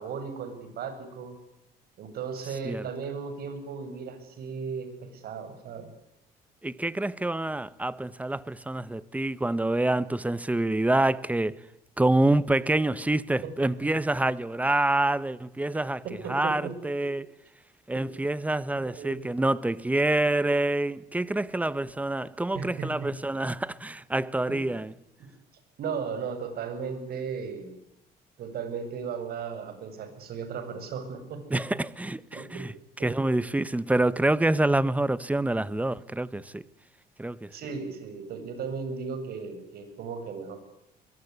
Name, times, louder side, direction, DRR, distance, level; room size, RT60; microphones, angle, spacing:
voice 1, 0.0-1.4 2.0-5.9 13.4-13.9 15.7-16.7 17.0-17.1 18.0-18.1 18.8-19.3 22.5-23.1 24.5-24.6 25.2-25.3 25.8-27.8 28.4-31.8 32.3-32.7 33.0-33.3 37.5-40.6, right 5 dB, 65° right, 7.8 m, -36 dB
voice 2, 6.6-11.6 12.0-16.0 16.3-17.2 17.9-24.9 31.5-32.7 33.0-36.6 37.2-37.5, right 2 dB, 10° right, 1.2 m, -26 dB
24.0 x 22.0 x 9.7 m
cardioid pair, 110°, 17 cm